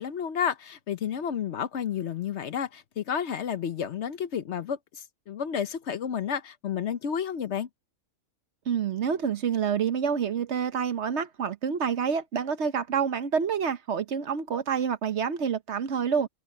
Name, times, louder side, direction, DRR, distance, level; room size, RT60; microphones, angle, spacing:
voice 1, 0.0-7.7, left 8 dB, 60° left, 1.0 m, -31 dB
voice 2, 8.7-16.3, right 7 dB, 60° right, 1.1 m, -28 dB
omnidirectional pair, 1.4 m